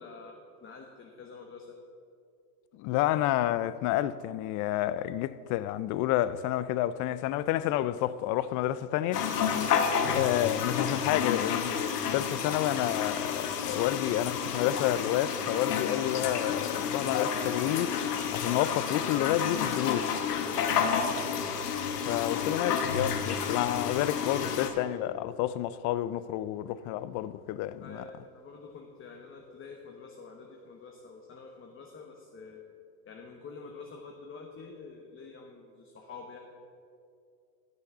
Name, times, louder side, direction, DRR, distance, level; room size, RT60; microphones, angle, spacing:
voice 1, 0.0-1.8 20.7-21.2 27.8-32.7 33.0-36.4, left 4 dB, 25° left, 1.1 m, -47 dB
voice 2, 2.7-9.3 10.1-18.0 18.3-20.2 22.1-28.0, left 13 dB, 45° left, 0.4 m, -30 dB
sound 1, 9.1-24.7, left 7 dB, 85° left, 1.1 m, -30 dB
10.0 x 6.4 x 6.7 m
hypercardioid pair, 95°, 46 cm